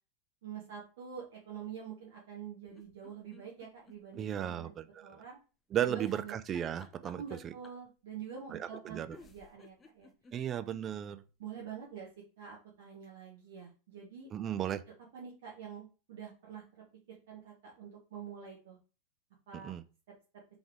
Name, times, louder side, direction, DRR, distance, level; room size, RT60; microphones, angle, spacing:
voice 1, 0.4-4.7 5.0-5.4 5.9-6.4 7.2-10.1 11.4-12.1 12.4-14.3 15.1-16.6 17.1-18.8 19.5-19.7, right 7 dB, 55° right, -3 dB, 1.1 m, -46 dB
sound 1, 2.7-4.6 4.9-5.0 6.0-7.9 8.8-8.9 9.1-10.9 11.3-11.4 11.6-11.7, left 3 dB, 15° left, 0.6 m, -56 dB
voice 2, 4.2-5.2 5.7-7.5 8.5-9.2 10.3-11.2 14.3-14.8 19.5-19.8, right 10 dB, 25° right, 13 dB, 0.4 m, -35 dB
3.5 x 3.4 x 3.5 m, 0.34 s
figure-of-eight pair, 90°, 0 cm